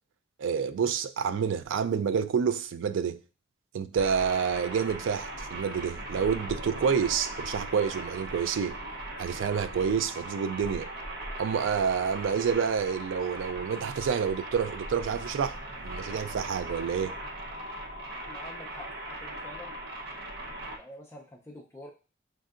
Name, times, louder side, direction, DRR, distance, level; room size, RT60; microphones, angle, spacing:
voice 1, 0.4-3.2 3.7-8.8 9.2-10.9 11.4-15.6 15.8-17.2, right 6 dB, 80° right, 0.3 m, -28 dB
sound 1, 3.9-20.8, right 1 dB, 55° right, 0.8 m, -39 dB
voice 2, 18.3-19.8 20.7-21.9, left 1 dB, 15° left, 0.5 m, -47 dB
6.3 x 2.6 x 2.4 m
head